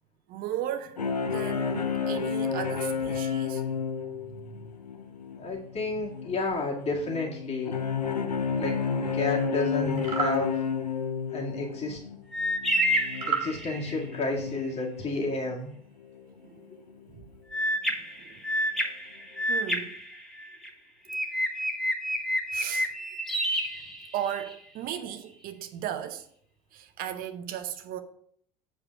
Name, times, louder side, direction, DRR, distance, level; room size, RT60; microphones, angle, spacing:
voice 1, 0.3-1.0 1.2-3.9 4.1-4.8 5.9-6.0 16.4-16.6 17.1-17.3 17.9-18.4 19.5-20.0 22.5-22.9 24.1-26.3 26.7-28.0, right 10 dB, 50° right, 0.8 m, -36 dB
sound 1, 1.0-15.5 16.0-16.3 16.7-16.8 17.2-17.3, left 6 dB, 90° left, 0.7 m, -32 dB
voice 2, 5.4-7.7 8.6-8.7 9.1-10.6 11.3-12.0 13.3-15.7 16.7-16.8, left 3 dB, 35° left, 2.1 m, -31 dB
sound 2, 9.9-10.4 13.1-13.5, right 7 dB, 75° right, 1.5 m, -29 dB
sound 3, 12.3-14.0 17.5-20.7 21.1-24.5, equal, ahead, 1.5 m, -29 dB
8.3 x 4.9 x 4.7 m
figure-of-eight pair, 70°, 20 cm